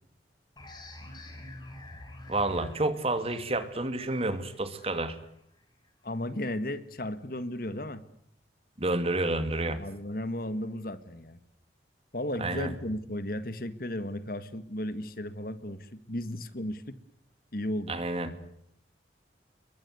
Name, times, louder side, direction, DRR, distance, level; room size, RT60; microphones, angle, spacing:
sound 1, 0.6-5.9, left 1 dB, 25° left, 7.4 m, -48 dB
voice 1, 2.3-5.2 8.8-9.8 12.4-12.7 17.9-18.3, right 2 dB, 35° right, 10 dB, 2.4 m, -29 dB
voice 2, 6.0-8.0 9.8-11.4 12.1-17.0 17.5-18.0, left 1 dB, 55° left, 13 dB, 1.8 m, -35 dB
28.5 x 22.5 x 8.0 m, 0.74 s
head